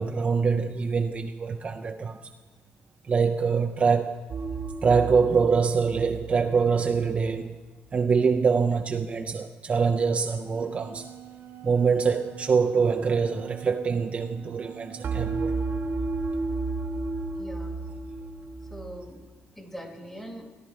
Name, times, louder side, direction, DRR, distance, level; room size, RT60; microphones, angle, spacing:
voice 1, 0.0-2.2 3.1-4.2 4.8-7.5 7.9-11.1 11.6-15.6, right 5 dB, 30° right, 0.3 m, -24 dB
sound 1, 4.3-7.4 15.0-19.0, right 3 dB, 50° right, 1.0 m, -32 dB
Wind instrument woodwind instrument, 10.3-15.4, right 12 dB, 80° right, 1.3 m, -46 dB
voice 2, 17.4-17.8 18.7-20.5, equal, 5° left, 1.2 m, -42 dB
18.0 x 10.0 x 3.1 m
cardioid pair, 145°, 4 cm